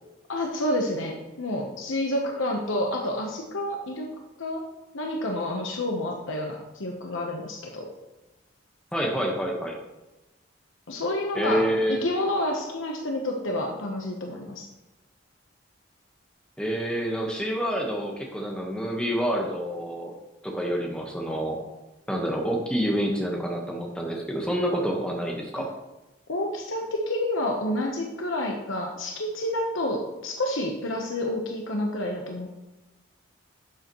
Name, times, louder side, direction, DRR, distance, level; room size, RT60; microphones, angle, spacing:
voice 1, 0.3-4.1 4.4-4.6 4.9-7.9 10.9-14.7 25.5-25.7 26.3-32.5, left 1 dB, 80° left, 1 dB, 1.1 m, -29 dB
voice 2, 8.9-9.8 11.3-12.0 16.6-20.1 20.4-21.6 22.1-25.7, equal, 5° left, 0 dB, 1.3 m, -27 dB
11.5 x 7.7 x 3.1 m, 1.0 s
head